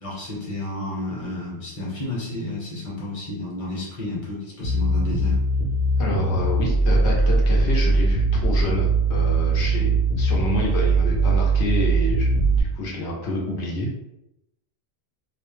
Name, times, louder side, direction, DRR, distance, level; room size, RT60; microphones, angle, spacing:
voice 1, 0.0-5.4 9.7-9.9, left 1 dB, 35° left, -5 dB, 0.9 m, -31 dB
sound 1, 4.6-12.6, right 3 dB, 55° left, 0.8 m, -20 dB
voice 2, 6.0-9.9 10.2-13.9, left 1 dB, 90° left, -3 dB, 1.0 m, -28 dB
2.4 x 2.1 x 3.0 m, 0.86 s
omnidirectional pair, 1.1 m